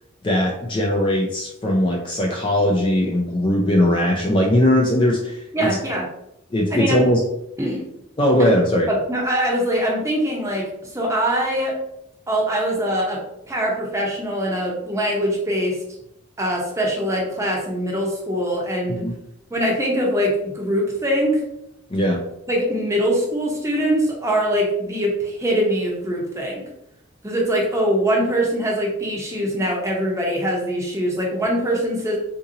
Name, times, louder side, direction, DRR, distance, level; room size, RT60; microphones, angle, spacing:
voice 1, 0.2-5.8 6.5-7.2 8.2-8.9 19.0-19.1 21.9-22.2, left 1 dB, 25° left, -1 dB, 0.3 m, -19 dB
voice 2, 5.5-6.0 6.7-7.1 7.6-7.8 8.4-8.5 8.9-11.7 12.3-13.2 13.4-15.8 16.4-19.0 19.5-21.4 22.5-26.6 27.2-32.2, equal, 15° right, -2 dB, 0.7 m, -22 dB
3.9 x 2.6 x 2.7 m, 0.81 s
head